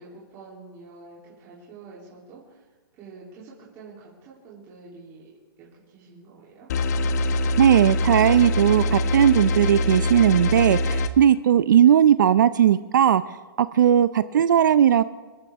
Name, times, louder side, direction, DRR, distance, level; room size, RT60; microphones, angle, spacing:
voice 1, 0.0-2.7 3.0-5.3 5.6-6.7, right 3 dB, 20° right, -7 dB, 3.2 m, -46 dB
sound 1, 6.7-11.1, left 1 dB, 40° left, 1.0 m, -23 dB
voice 2, 7.6-13.2 13.6-15.0, right 10 dB, 50° right, 14 dB, 0.5 m, -18 dB
27.5 x 13.5 x 3.6 m, 1.3 s
hypercardioid pair, 170°, 13 cm